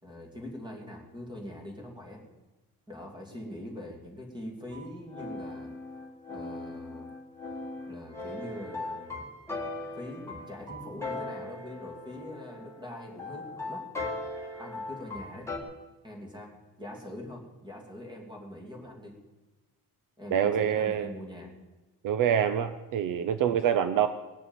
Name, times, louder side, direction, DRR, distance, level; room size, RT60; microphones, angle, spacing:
voice 1, 0.0-2.2 2.9-5.7 6.3-7.1 7.9-9.3 9.9-13.8 14.6-15.5 16.0-19.2 20.2-21.5, left 1 dB, 10° right, 1 dB, 2.7 m, -43 dB
sound 1, 4.7-15.6, left 2 dB, 5° left, 2.0 m, -39 dB
voice 2, 20.3-21.1 22.0-24.1, right 9 dB, 60° right, 11 dB, 0.7 m, -26 dB
19.0 x 6.8 x 9.0 m, 1.1 s
cardioid pair, 170°, 36 cm